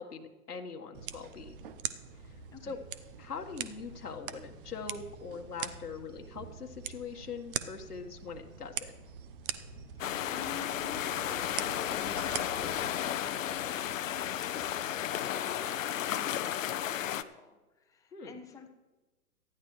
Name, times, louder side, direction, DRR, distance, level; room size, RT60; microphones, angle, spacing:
voice 1, 0.0-1.7 2.2-2.8 3.2-8.9 18.1-18.3, left 5 dB, 85° left, 3 dB, 1.6 m, -42 dB
sound 1, 0.9-12.9, right 10 dB, 35° right, 0.7 m, -43 dB
sound 2, 1.0-15.2, left 2 dB, 40° left, 1.4 m, -57 dB
sound 3, 10.0-17.2, left 11 dB, 55° left, 0.8 m, -33 dB
voice 2, 10.0-18.7, left 6 dB, 5° left, 4 dB, 1.0 m, -49 dB
18.5 x 13.0 x 3.2 m, 1.1 s
hypercardioid pair, 125°, 46 cm